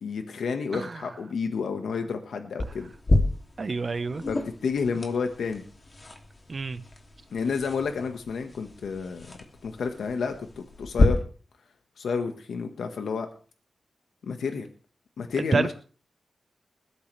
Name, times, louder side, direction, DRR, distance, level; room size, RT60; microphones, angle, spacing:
voice 1, 0.0-2.9 4.3-5.6 7.3-9.3 9.6-11.2 12.0-13.3 14.3-14.7 15.2-15.7, left 5 dB, 90° left, 6 dB, 1.5 m, -30 dB
sound 1, 2.6-11.0, left 2 dB, 35° left, 2.8 m, -30 dB
voice 2, 3.6-4.2 6.5-6.8 15.4-15.7, right 4 dB, 50° right, 12 dB, 1.1 m, -28 dB
20.5 x 13.0 x 3.4 m, 0.40 s
cardioid pair, 80°, 0 cm